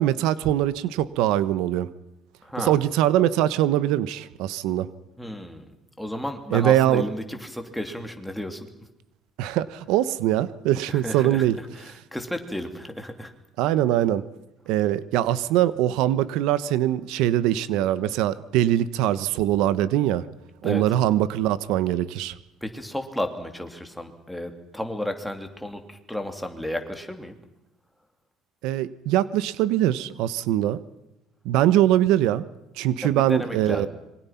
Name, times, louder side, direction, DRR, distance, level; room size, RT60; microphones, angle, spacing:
voice 1, 0.0-1.9 2.6-4.9 6.5-7.0 9.4-11.6 13.6-14.2 14.7-20.2 20.6-22.3 28.6-30.8 31.4-32.4 32.7-33.9, right 12 dB, 75° right, 16 dB, 1.1 m, -22 dB
voice 2, 2.4-2.8 5.2-5.7 6.0-8.7 10.9-13.3 20.6-20.8 22.6-27.4 33.0-33.9, left 1 dB, ahead, 5 dB, 2.8 m, -33 dB
26.5 x 24.0 x 5.9 m, 0.89 s
cardioid pair, 155°, 0 cm